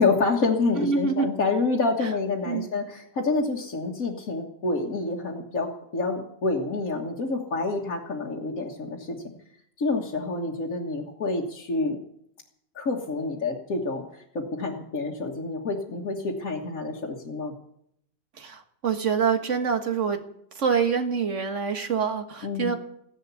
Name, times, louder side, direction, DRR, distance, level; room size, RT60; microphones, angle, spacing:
voice 1, 0.0-9.2 9.8-12.0 12.8-17.5 22.4-22.8, left 3 dB, 65° left, -3 dB, 2.0 m, -27 dB
voice 2, 0.8-1.3 2.0-2.1 2.4-2.7 18.4-20.2 20.6-22.8, right 6 dB, 55° right, 7 dB, 1.8 m, -26 dB
15.0 x 11.0 x 8.3 m, 0.73 s
omnidirectional pair, 1.5 m